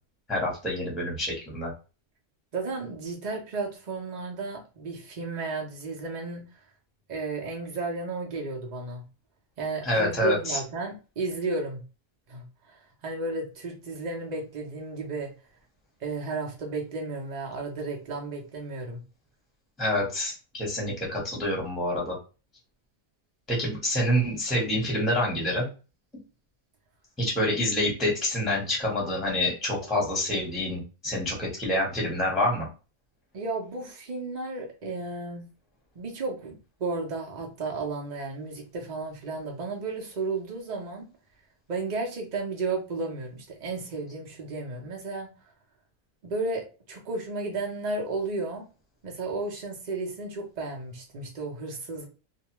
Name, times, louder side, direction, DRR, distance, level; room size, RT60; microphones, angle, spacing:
voice 1, 0.3-1.7 9.8-10.6 19.8-22.2 23.5-25.7 27.2-32.7, left 1 dB, ahead, -4 dB, 0.9 m, -27 dB
voice 2, 2.5-6.6 7.1-9.0 9.6-11.8 12.3-15.3 16.0-19.0 33.3-35.4 35.9-41.0 41.7-45.3 46.2-48.6 49.0-52.1, right 3 dB, 85° right, 0 dB, 0.3 m, -33 dB
2.5 x 2.3 x 2.9 m, 0.32 s
omnidirectional pair, 1.7 m